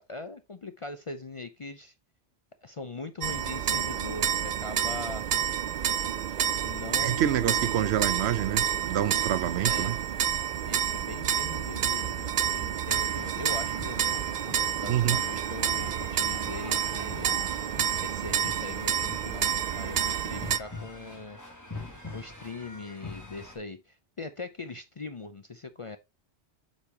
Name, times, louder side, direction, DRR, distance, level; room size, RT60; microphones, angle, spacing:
voice 1, 0.0-1.9 2.6-5.3 6.6-8.0 9.6-10.0 10.6-17.4 18.0-19.5 19.8-21.4 22.1-26.0, left 3 dB, 40° left, 0.5 m, -41 dB
sound 1, 3.2-20.6, right 9 dB, 55° right, 0.5 m, -29 dB
voice 2, 7.0-10.0 14.9-15.2, right 10 dB, 75° right, 0.9 m, -27 dB
sound 2, 12.9-23.6, left 2 dB, 15° left, 2.4 m, -44 dB
8.3 x 5.3 x 2.8 m
omnidirectional pair, 1.1 m